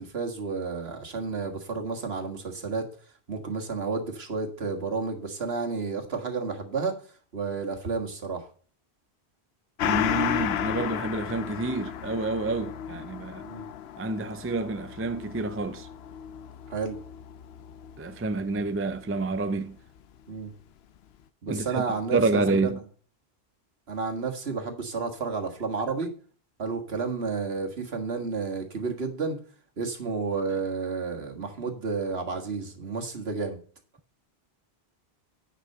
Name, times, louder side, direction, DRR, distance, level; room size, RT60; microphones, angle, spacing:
voice 1, 0.0-2.9 3.3-7.0 7.3-8.5 13.4-13.7 16.7-17.0 20.3-20.5 21.4-22.7 23.9-26.1 26.6-29.4 29.8-33.6, right 4 dB, 70° right, 1.9 m, -31 dB
Gong, 9.8-18.8 19.1-19.2, left 10 dB, 75° left, 0.8 m, -33 dB
voice 2, 9.8-13.4 14.0-15.9 18.0-19.8 21.5-21.8 22.1-22.8, right 3 dB, 20° right, 0.4 m, -28 dB
9.5 x 6.1 x 5.5 m
omnidirectional pair, 1.1 m